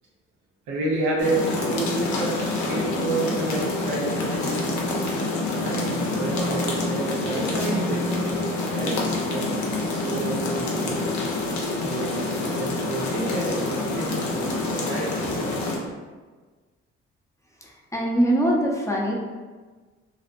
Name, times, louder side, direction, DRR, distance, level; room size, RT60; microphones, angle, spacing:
voice 1, 0.7-4.8 5.6-11.2 11.8-15.5, right 2 dB, 70° right, -2 dB, 0.7 m, -30 dB
sound 1, 1.2-15.8, left 2 dB, 70° left, 0.6 m, -27 dB
voice 2, 17.6-19.1, right 1 dB, 10° left, -3 dB, 0.6 m, -23 dB
2.6 x 2.1 x 2.5 m, 1.4 s
hypercardioid pair, 45°, 30 cm